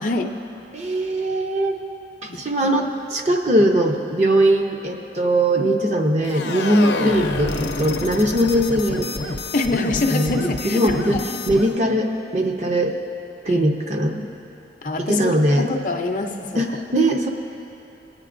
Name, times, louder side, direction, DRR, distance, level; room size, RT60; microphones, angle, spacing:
voice 1, 0.0-0.3 2.3-2.4 9.5-11.3 13.5-13.7 14.8-15.3 15.6-16.6, left 3 dB, 45° left, 4 dB, 0.5 m, -25 dB
voice 2, 0.7-1.7 2.2-9.1 10.1-11.2 11.5-13.0 13.4-14.3 15.0-15.7 16.6-17.3, right 1 dB, 40° right, 2 dB, 0.7 m, -20 dB
sound 1, 6.2-11.8, left 3 dB, 85° left, 0.6 m, -28 dB
21.5 x 8.9 x 2.5 m, 3.0 s
head